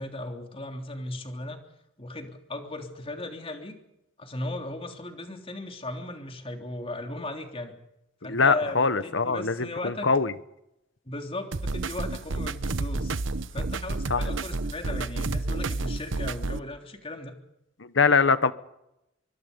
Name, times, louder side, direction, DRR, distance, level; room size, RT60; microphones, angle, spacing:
voice 1, 0.0-1.6 2.0-3.7 4.2-7.8 8.2-10.1 11.1-13.1 13.5-17.3, left 1 dB, 30° left, 3.3 m, -36 dB
voice 2, 8.3-10.3 14.1-14.2 17.8-18.5, left 4 dB, 70° left, 1.2 m, -23 dB
sound 1, 11.5-16.6, right 2 dB, 80° right, 1.0 m, -30 dB
25.0 x 24.5 x 5.4 m
head